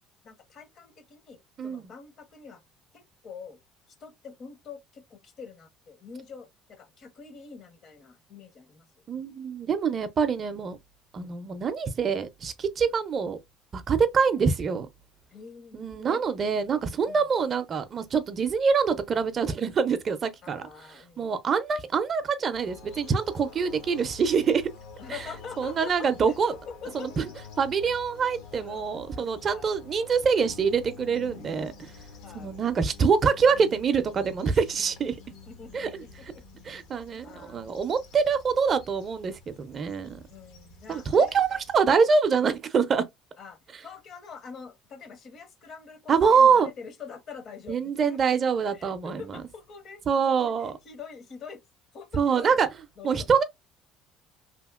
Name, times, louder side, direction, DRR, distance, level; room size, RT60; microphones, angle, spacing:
voice 1, 0.2-2.6 2.9-3.6 4.0-9.1 15.3-16.2 17.1-17.2 20.4-21.4 25.0-27.1 28.5-28.9 29.5-29.7 32.2-32.5 35.5-36.1 36.3-36.4 36.7-37.7 40.3-41.6 43.4-48.4 48.7-51.6 51.9-52.5 53.0-53.4, left 5 dB, 45° left, 0.7 m, -45 dB
voice 2, 1.6-1.9 9.1-10.8 11.1-13.4 13.7-14.9 15.7-20.7 21.2-24.7 25.1-25.2 25.6-26.5 26.9-27.2 27.6-31.9 32.3-35.2 35.7-36.0 36.7-40.2 40.9-41.5 41.7-43.0 46.1-46.7 47.7-49.4 50.1-50.7 52.1-52.7 53.0-53.4, right 6 dB, 35° right, 0.4 m, -25 dB
sound 1, 22.5-41.8, left 5 dB, 80° left, 0.9 m, -48 dB
2.8 x 2.8 x 2.3 m
cardioid pair, 140°, 0 cm